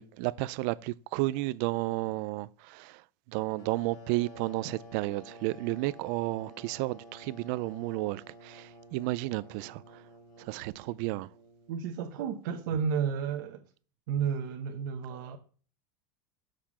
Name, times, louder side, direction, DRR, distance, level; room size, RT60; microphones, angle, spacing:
voice 1, 0.0-10.0 10.4-11.3, right 19 dB, 50° right, 0.3 m, -32 dB
sound 1, 3.6-12.0, right 1 dB, 40° left, 4.2 m, -51 dB
voice 2, 11.7-13.6 14.1-15.4, right 7 dB, 70° right, 0.9 m, -32 dB
6.6 x 5.8 x 7.2 m
supercardioid pair, 165°, 11 cm